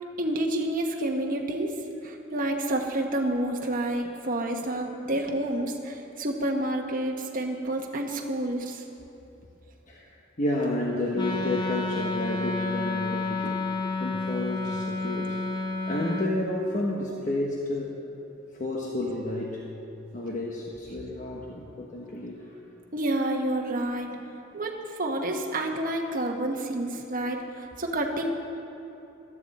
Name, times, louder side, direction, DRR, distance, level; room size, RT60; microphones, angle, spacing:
voice 1, 0.2-1.8 2.0-8.8 22.9-24.1 24.5-24.7 25.0-28.3, right 1 dB, 45° right, 1 dB, 1.1 m, -29 dB
voice 2, 9.9-13.6 14.0-15.4 15.8-18.0 18.5-19.6 20.1-22.5, left 1 dB, 45° left, -3 dB, 1.2 m, -31 dB
Wind instrument woodwind instrument, 11.1-16.4, left 3 dB, 25° left, 0.9 m, -30 dB
16.5 x 12.5 x 4.2 m, 3.0 s
head